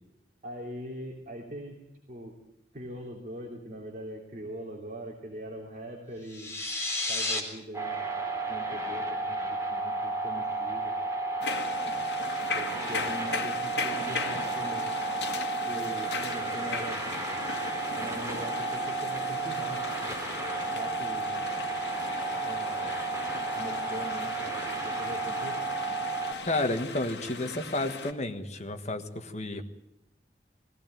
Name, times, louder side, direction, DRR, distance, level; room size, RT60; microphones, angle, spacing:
voice 1, 0.4-1.8 2.1-2.3 2.7-6.5 7.1-8.1 8.5-11.0 12.5-15.0 15.6-17.0 18.0-19.8 20.7-21.4 22.4-23.0 23.5-25.5, right 1 dB, 45° right, -1 dB, 3.1 m, -41 dB
sound 1, 6.3-7.4, left 2 dB, 15° left, 3.8 m, -31 dB
sound 2, 7.7-26.3, right 3 dB, 20° right, 3.1 m, -32 dB
sound 3, 11.4-28.1, left 4 dB, 75° left, 2.0 m, -38 dB
voice 2, 26.4-29.6, left 2 dB, 40° left, 7 dB, 1.5 m, -31 dB
21.5 x 15.5 x 9.2 m, 0.83 s
head